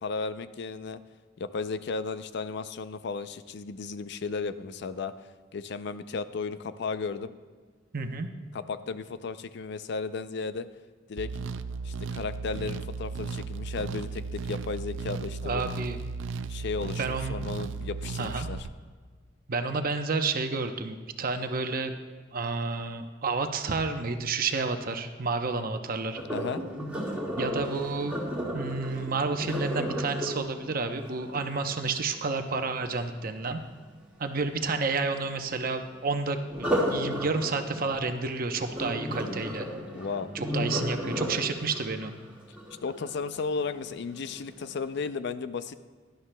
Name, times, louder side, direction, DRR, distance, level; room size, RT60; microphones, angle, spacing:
voice 1, 0.0-1.0 1.4-5.1 5.5-7.3 8.5-10.7 11.1-11.3 11.8-15.6 16.5-18.6 26.3-26.6 39.4-39.5 39.9-40.3 42.8-45.7, left 4 dB, 65° left, 12 dB, 0.4 m, -34 dB
voice 2, 7.9-8.3 15.4-16.0 17.0-17.4 18.2-18.5 19.5-21.9 22.3-26.2 27.4-28.2 28.5-33.6 34.2-39.7 40.3-42.1, right 4 dB, 50° right, 7 dB, 0.7 m, -30 dB
sound 1, 11.2-18.7, right 4 dB, 75° right, 0.4 m, -35 dB
Sink (filling or washing), 26.1-32.1 36.5-43.5 44.0-44.4 44.8-44.9, equal, 5° right, 1.8 m, -33 dB
17.0 x 11.5 x 2.2 m, 1.5 s
head